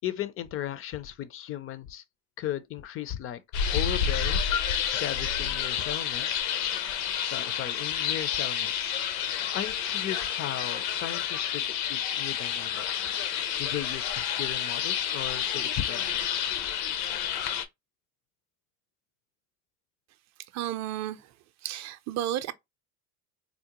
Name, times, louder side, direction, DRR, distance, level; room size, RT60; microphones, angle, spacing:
voice 1, 0.0-2.0 2.4-3.4 3.7-6.5 7.3-16.6, left 11 dB, 35° left, 0.4 m, -37 dB
sound 1, 3.5-17.7, left 8 dB, 80° left, 0.7 m, -29 dB
voice 2, 20.5-21.2 21.6-22.5, right 13 dB, 45° right, 0.5 m, -32 dB
3.6 x 2.1 x 2.9 m
supercardioid pair, 100°, 41 cm